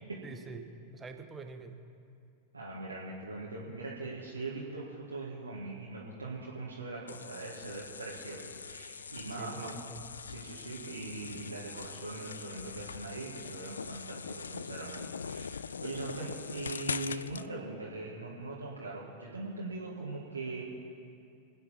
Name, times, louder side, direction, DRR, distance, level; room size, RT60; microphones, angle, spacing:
voice 1, 0.2-1.8 9.4-10.0, right 4 dB, 15° right, 6 dB, 1.2 m, -45 dB
voice 2, 2.5-9.7 10.2-20.6, right 2 dB, 80° right, -5 dB, 1.8 m, -41 dB
sound 1, 7.1-17.5, left 6 dB, 70° left, 0.3 m, -42 dB
25.5 x 9.2 x 4.3 m, 2.5 s
figure-of-eight pair, 90°, 0 cm